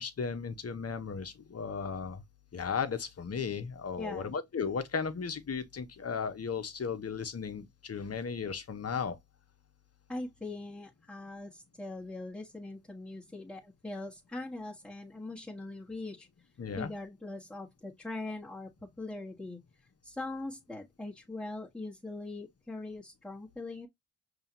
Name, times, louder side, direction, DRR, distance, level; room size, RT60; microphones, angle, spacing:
voice 1, 0.0-2.2 2.5-9.2 16.6-16.9, left 5 dB, 40° left, 1.1 m, -35 dB
voice 2, 4.0-4.3 10.1-16.3 16.8-19.6 20.0-23.9, left 2 dB, 5° left, 1.5 m, -41 dB
5.5 x 3.0 x 2.8 m
supercardioid pair, 55°, 39 cm